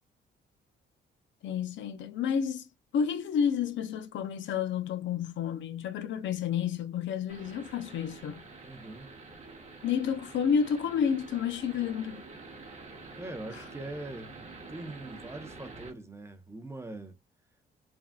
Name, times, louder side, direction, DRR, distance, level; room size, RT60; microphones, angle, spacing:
voice 1, 1.4-2.7 2.9-8.4 9.8-12.2, left 7 dB, 70° left, 0.5 m, -30 dB
sound 1, 7.3-15.9, right 3 dB, 35° right, 1.0 m, -47 dB
voice 2, 8.6-9.1 13.2-17.1, right 2 dB, 15° right, 0.6 m, -42 dB
3.4 x 2.3 x 2.2 m
cardioid pair, 90°, 20 cm